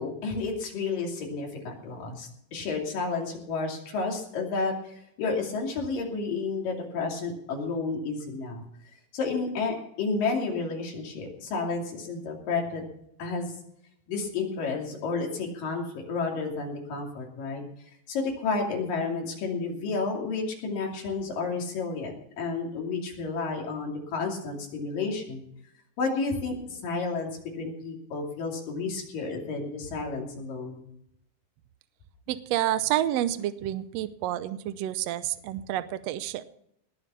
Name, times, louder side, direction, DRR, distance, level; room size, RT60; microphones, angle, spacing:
voice 1, 0.0-8.6 9.1-12.8 13.2-13.6 14.1-17.6 18.1-25.4 26.0-27.3 27.6-30.8, left 4 dB, 85° left, 0 dB, 4.4 m, -31 dB
voice 2, 32.3-36.4, right 13 dB, 85° right, 12 dB, 1.5 m, -29 dB
19.5 x 6.8 x 6.9 m, 0.73 s
omnidirectional pair, 3.8 m